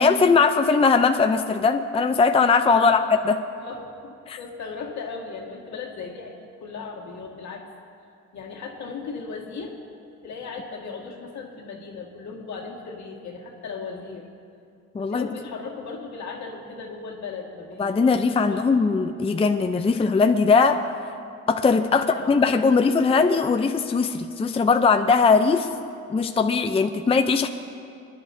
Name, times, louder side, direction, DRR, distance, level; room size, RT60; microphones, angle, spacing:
voice 1, 0.0-3.0 3.3-3.4 4.3-4.4 14.9-15.3 17.8-20.8 21.5-25.7 26.1-27.5, left 4 dB, 20° left, 7 dB, 0.5 m, -20 dB
voice 2, 3.5-6.3 6.6-7.7 8.3-9.8 10.2-14.3 15.0-18.7 21.7-22.5, left 4 dB, 65° left, 0 dB, 1.9 m, -37 dB
25.0 x 10.5 x 2.7 m, 2.5 s
cardioid pair, 90°, 30 cm